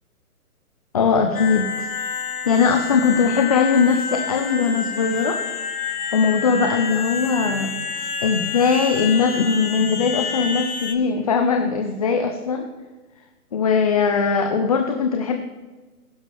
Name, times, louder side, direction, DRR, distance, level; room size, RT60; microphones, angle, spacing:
voice 1, 0.9-1.9 2.5-5.4 6.1-12.7 13.5-15.4, left 5 dB, 25° left, 5 dB, 0.5 m, -20 dB
sound 1, 1.3-10.9, left 6 dB, 75° left, 1.6 m, -28 dB
16.0 x 11.5 x 3.4 m, 1.2 s
hypercardioid pair, 150°, 45 cm